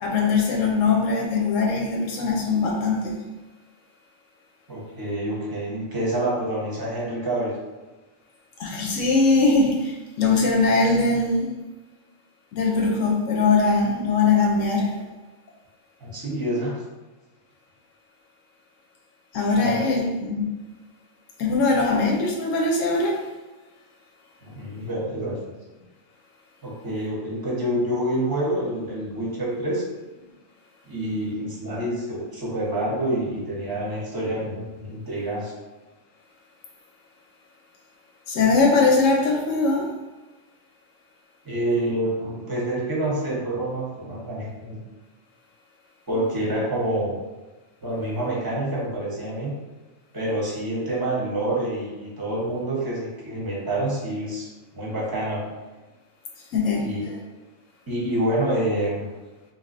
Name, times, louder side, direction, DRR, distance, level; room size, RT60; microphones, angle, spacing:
voice 1, 0.0-3.2 8.6-11.5 12.5-14.9 19.3-20.5 21.4-23.2 38.3-39.9 56.5-56.9, left 3 dB, 80° left, 0 dB, 1.0 m, -21 dB
voice 2, 4.7-7.6 16.0-16.7 19.6-19.8 24.4-25.4 26.6-29.8 30.9-35.5 41.4-44.8 46.1-47.2 47.8-49.5 50.1-54.5 54.7-55.5 56.8-57.0 57.9-59.1, right 1 dB, 20° right, -5 dB, 0.7 m, -27 dB
3.3 x 2.7 x 2.5 m, 1.2 s
omnidirectional pair, 1.3 m